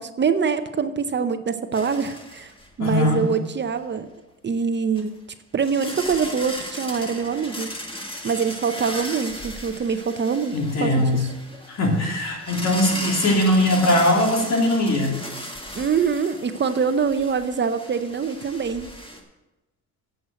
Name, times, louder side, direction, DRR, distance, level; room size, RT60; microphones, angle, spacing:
voice 1, 0.0-2.5 2.8-4.1 4.4-5.2 5.5-7.7 8.2-11.3 15.7-18.9, right 6 dB, 35° right, 9 dB, 0.7 m, -24 dB
sound 1, 1.7-2.7 3.1-3.2 5.0-5.1 5.6-19.2, left 1 dB, 15° left, 1.8 m, -36 dB
voice 2, 2.8-3.3 10.5-11.2 11.7-15.2, left 1 dB, 60° left, -1 dB, 3.2 m, -20 dB
7.9 x 7.8 x 7.6 m, 1.0 s
cardioid pair, 90°, 30 cm